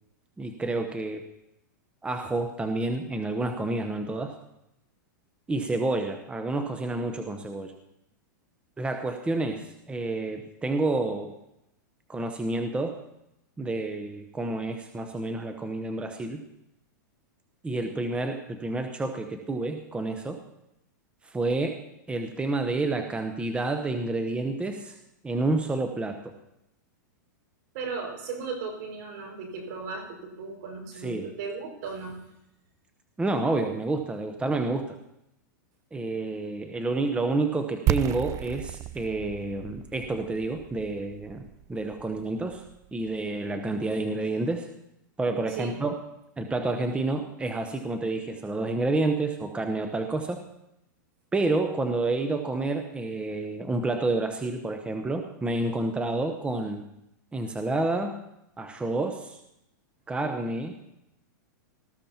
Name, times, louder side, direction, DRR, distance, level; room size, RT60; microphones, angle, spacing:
voice 1, 0.4-1.2 2.0-4.3 5.5-7.7 8.8-11.3 12.1-13.0 13.6-16.4 17.6-20.4 21.2-21.8 22.1-25.0 25.2-26.3 30.9-31.3 33.2-35.0 35.9-42.6 42.9-44.7 45.2-46.0 46.4-50.4 51.3-56.8 57.3-58.1 58.6-59.4 60.1-60.7, right 2 dB, 10° right, 6 dB, 0.9 m, -29 dB
voice 2, 27.7-32.2 45.5-45.8, right 4 dB, 60° right, 2 dB, 5.5 m, -36 dB
sound 1, 37.9-43.6, right 13 dB, 30° right, 0.4 m, -33 dB
19.0 x 14.0 x 2.9 m, 0.85 s
hypercardioid pair, 120°, 10 cm